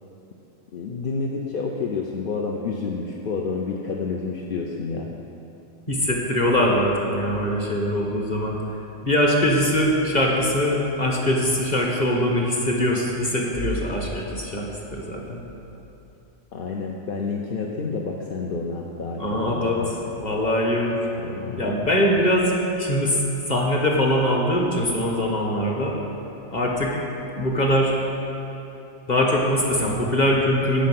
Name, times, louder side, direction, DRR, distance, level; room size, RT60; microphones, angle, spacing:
voice 1, 0.7-5.1 16.5-19.9 21.2-21.8, left 4 dB, 50° left, -1 dB, 0.7 m, -29 dB
voice 2, 5.9-8.6 9.0-15.4 19.2-19.8 20.2-21.0 21.6-26.0 26.5-27.0 27.4-27.9 29.1-30.9, equal, 35° left, -1 dB, 1.4 m, -22 dB
10.5 x 5.4 x 7.7 m, 2.9 s
omnidirectional pair, 1.4 m